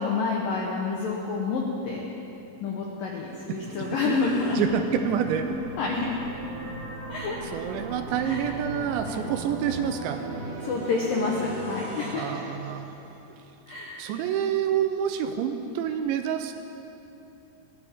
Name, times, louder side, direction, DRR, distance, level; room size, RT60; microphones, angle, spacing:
voice 1, 0.0-2.1 2.6-4.6 5.8-6.2 7.1-7.4 8.2-8.4 10.6-12.4 13.7-14.0, left 4 dB, 80° left, -2 dB, 2.0 m, -28 dB
sound 1, 3.2-13.4, right 2 dB, 60° right, 2.8 m, -37 dB
voice 2, 4.6-5.5 7.4-10.2 12.1-12.9 14.0-16.5, right 9 dB, 80° right, 7 dB, 2.9 m, -28 dB
20.0 x 15.0 x 3.6 m, 2.9 s
omnidirectional pair, 5.5 m